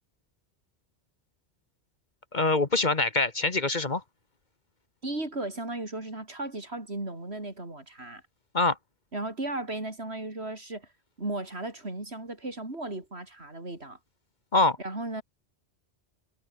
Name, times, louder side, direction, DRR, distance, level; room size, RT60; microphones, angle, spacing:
voice 1, 2.3-4.0 8.5-8.8 14.5-14.8, left 3 dB, 45° left, 1.7 m, -24 dB
voice 2, 5.0-8.2 9.1-10.9 11.2-14.0 14.8-15.2, right 2 dB, 70° right, 5.1 m, -35 dB
omnidirectional pair, 1.1 m